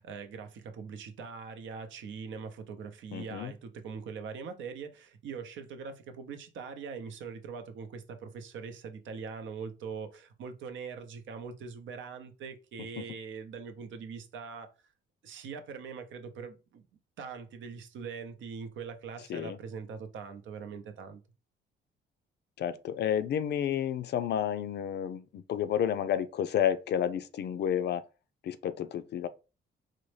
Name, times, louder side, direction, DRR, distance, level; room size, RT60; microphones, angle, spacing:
voice 1, 0.0-14.7 15.2-16.8 17.2-21.2, right 5 dB, 75° right, 0.6 m, -42 dB
voice 2, 3.1-3.5 13.0-13.1 19.3-19.6 22.6-28.0 28.4-29.3, left 9 dB, 60° left, 0.4 m, -31 dB
4.0 x 2.1 x 3.2 m
cardioid pair, 90°, 20 cm